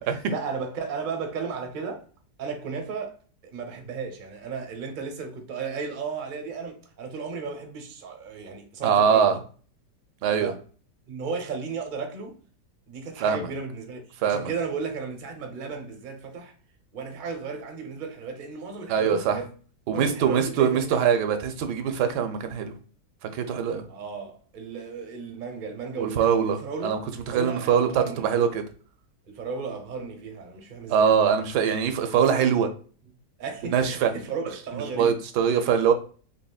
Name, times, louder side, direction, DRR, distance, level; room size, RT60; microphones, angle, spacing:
voice 1, 0.0-2.0 2.4-3.1 3.4-9.4 10.4-10.6 11.1-12.3 12.9-16.5 16.9-19.5 19.9-21.0 23.9-28.3 29.3-31.2 33.4-35.2, right 5 dB, 45° right, 0.7 m, -34 dB
voice 2, 8.8-9.4 10.2-10.5 13.2-13.5 14.2-14.5 18.9-19.4 19.9-22.7 23.3-23.8 26.0-27.0 27.3-28.7 30.9-32.7 33.6-34.1 35.0-35.9, right 7 dB, 80° right, 1.1 m, -23 dB
4.1 x 3.1 x 2.3 m
omnidirectional pair, 1.8 m